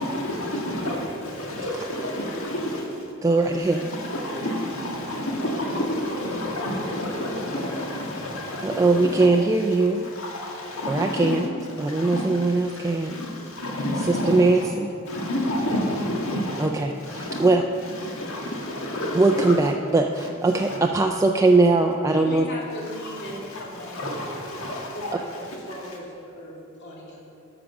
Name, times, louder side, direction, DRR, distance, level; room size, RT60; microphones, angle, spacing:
voice 1, 0.0-2.9 3.6-9.3 9.8-11.4 11.8-14.7 15.1-16.7 17.0-17.5 17.8-19.6 20.2-20.8 23.2-25.1, left 1 dB, 75° left, 1.7 m, -30 dB
voice 2, 3.2-3.8 8.6-10.1 10.9-11.4 11.8-13.2 14.1-14.9 16.6-17.6 19.1-22.5, right 3 dB, 15° right, 0.3 m, -21 dB
voice 3, 22.1-24.0 24.5-27.2, left 1 dB, 55° left, 2.5 m, -38 dB
12.5 x 5.0 x 5.9 m
head